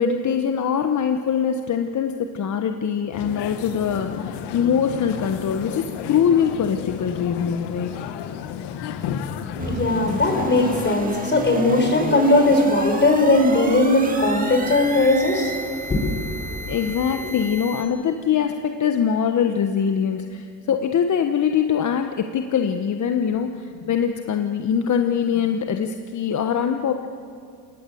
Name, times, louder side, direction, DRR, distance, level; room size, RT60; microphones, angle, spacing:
voice 1, 0.0-8.0 16.7-27.1, left 7 dB, 45° left, 6 dB, 1.3 m, -23 dB
sound 1, 3.1-11.0, left 8 dB, 75° left, 1.6 m, -32 dB
voice 2, 9.5-16.8, left 2 dB, 25° left, 4 dB, 5.6 m, -19 dB
sound 2, 9.6-17.8, right 3 dB, 20° right, 2.5 m, -33 dB
28.5 x 18.5 x 7.8 m, 2.3 s
cardioid pair, 105°, 41 cm